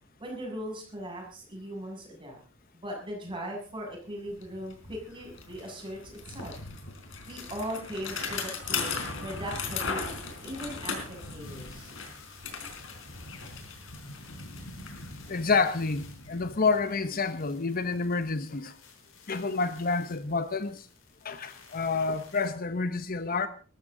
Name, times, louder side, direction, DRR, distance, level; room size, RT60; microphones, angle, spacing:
voice 1, 0.2-2.4 2.7-6.5 7.3-12.0, equal, 25° right, 7.1 m, -39 dB
Bicycle, 3.9-4.0 4.3-17.2, left 4 dB, 70° left, 4.3 m, -38 dB
sound 1, 6.2-6.3 6.5-22.5, left 6 dB, 85° left, 4.7 m, -55 dB
voice 2, 15.3-18.8 19.3-20.9 21.2-23.5, left 4 dB, 45° left, 1.0 m, -28 dB
20.5 x 14.0 x 3.9 m
head